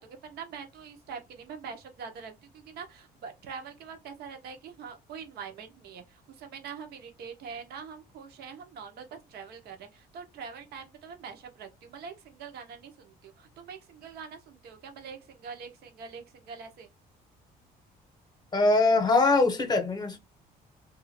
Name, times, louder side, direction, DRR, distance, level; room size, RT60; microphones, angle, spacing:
voice 1, 0.0-16.9, right 6 dB, 70° right, 1.0 m, -44 dB
voice 2, 18.5-20.2, left 3 dB, 25° left, 0.9 m, -22 dB
2.7 x 2.4 x 4.2 m
cardioid pair, 110°, 17 cm